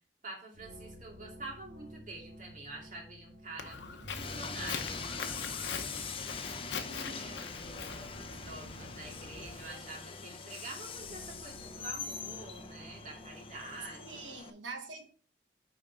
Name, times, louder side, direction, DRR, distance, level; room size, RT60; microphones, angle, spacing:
voice 1, 0.2-5.8 6.7-6.9 7.2-14.2, right 2 dB, 45° right, 2.5 m, -47 dB
sound 1, 0.5-14.4, right 1 dB, 65° right, 2.4 m, -52 dB
Walk footsteps, 3.6-9.7, left 5 dB, 70° left, 0.8 m, -43 dB
Train, 4.1-14.5, left 5 dB, 30° left, 0.7 m, -43 dB
voice 2, 6.8-7.5 14.0-15.1, right 3 dB, 90° right, 1.4 m, -45 dB
6.5 x 5.1 x 4.7 m
head